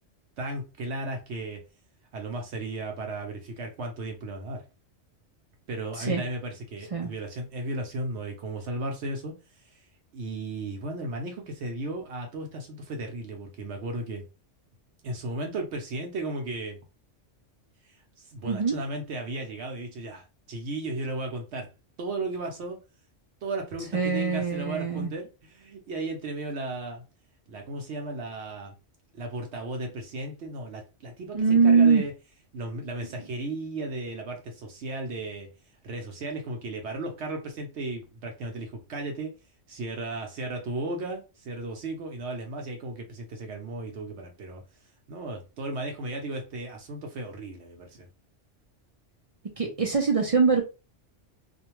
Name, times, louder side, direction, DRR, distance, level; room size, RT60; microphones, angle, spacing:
voice 1, 0.4-1.6 2.1-4.6 5.7-9.9 10.1-14.2 15.0-16.8 17.8-21.7 22.0-22.8 23.4-27.0 27.5-28.8 29.1-32.1 32.5-35.5 35.8-39.4 39.7-44.6 45.1-48.1, right 2 dB, 70° right, 0.8 m, -35 dB
voice 2, 18.4-18.8 23.9-25.1 31.3-32.0 49.6-50.6, right 5 dB, 55° right, 0.4 m, -22 dB
2.4 x 2.2 x 2.9 m
omnidirectional pair, 1.3 m